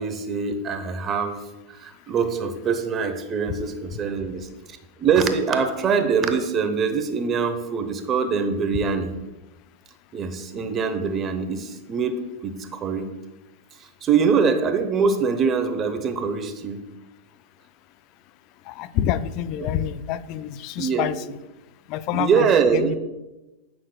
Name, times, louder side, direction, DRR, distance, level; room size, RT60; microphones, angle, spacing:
voice 1, 0.0-1.4 1.8-4.5 5.0-9.1 10.1-13.1 14.0-16.8 19.6-19.7 20.8-21.1 22.1-23.0, right 6 dB, 30° right, 8 dB, 0.8 m, -23 dB
voice 2, 18.7-21.4 21.9-22.5 22.7-23.0, left 11 dB, 50° left, 15 dB, 0.4 m, -27 dB
9.1 x 5.9 x 2.2 m, 1.0 s
hypercardioid pair, 105°, 0 cm